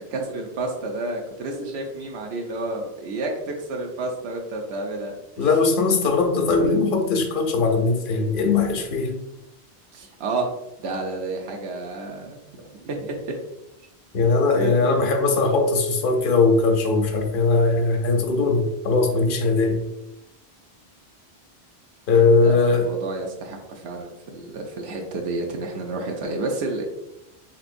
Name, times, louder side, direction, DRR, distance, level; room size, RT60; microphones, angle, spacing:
voice 1, 0.0-5.5 9.9-10.5 10.8-13.4 14.5-15.0 22.4-26.8, right 2 dB, 90° right, 1 dB, 0.9 m, -30 dB
voice 2, 5.4-9.2 14.1-19.8 22.1-22.9, left 3 dB, 60° left, 4 dB, 0.8 m, -20 dB
4.4 x 3.4 x 2.5 m, 0.88 s
omnidirectional pair, 1.1 m